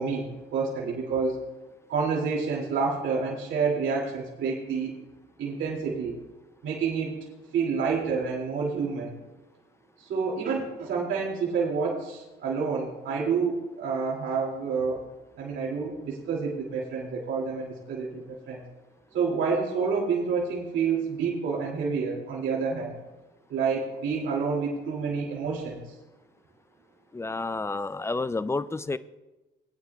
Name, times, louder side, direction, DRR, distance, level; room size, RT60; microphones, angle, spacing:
voice 1, 0.0-1.4 1.9-4.9 5.4-6.2 6.6-7.1 7.5-9.1 10.0-15.0 15.4-18.6 19.1-22.9 23.5-25.9, right 5 dB, 80° right, -4 dB, 2.6 m, -28 dB
voice 2, 27.1-29.0, left 3 dB, 15° left, 15 dB, 0.4 m, -30 dB
19.0 x 9.7 x 2.3 m, 1.1 s
cardioid pair, 90°, 20 cm